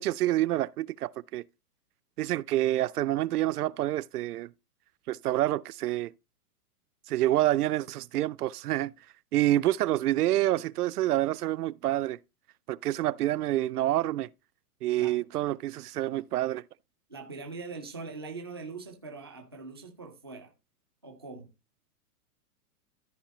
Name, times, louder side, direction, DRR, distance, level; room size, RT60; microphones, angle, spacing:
voice 1, 0.0-1.4 2.2-4.5 5.1-6.1 7.1-8.9 9.3-12.2 12.7-14.3 14.8-16.6, right 14 dB, 75° right, 0.5 m, -27 dB
voice 2, 17.1-20.5 21.0-21.5, right 4 dB, 20° right, 0.4 m, -42 dB
13.5 x 4.7 x 3.0 m
hypercardioid pair, 170°, 46 cm